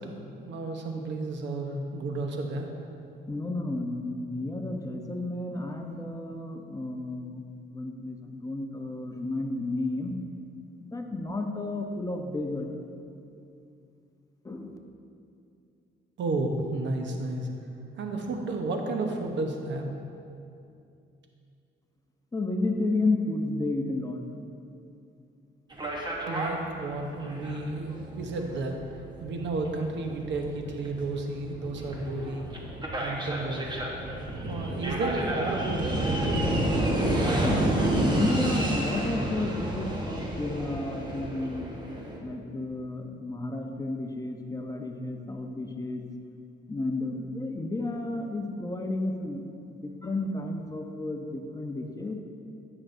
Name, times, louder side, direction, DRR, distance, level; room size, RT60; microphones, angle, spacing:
voice 1, 0.0-2.8 16.2-17.5 18.0-19.9 26.3-32.5 33.0-33.7 34.4-36.6, right 2 dB, 65° right, 3 dB, 1.0 m, -32 dB
voice 2, 3.3-7.4 7.7-10.2 10.8-12.7 14.4-14.8 22.3-24.2 37.2-41.7 42.2-46.0 46.7-49.4 49.7-52.2, left 2 dB, 15° left, 3 dB, 0.8 m, -32 dB
sound 1, 25.7-42.2, right 1 dB, 20° right, 1.2 m, -30 dB
13.5 x 6.1 x 2.7 m, 2.6 s
cardioid pair, 90°, 20 cm